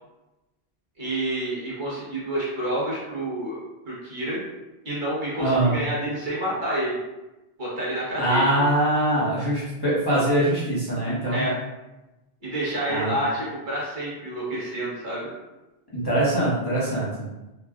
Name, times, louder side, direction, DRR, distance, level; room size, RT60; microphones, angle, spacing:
voice 1, 1.0-4.4 4.8-7.0 7.6-8.5 11.3-11.6 12.4-15.3, right 1 dB, 50° right, -8 dB, 1.0 m, -29 dB
voice 2, 5.4-5.8 8.2-11.5 12.9-13.2 15.9-17.1, right 1 dB, 25° left, -11 dB, 0.9 m, -23 dB
3.2 x 2.3 x 2.3 m, 1.0 s
omnidirectional pair, 1.1 m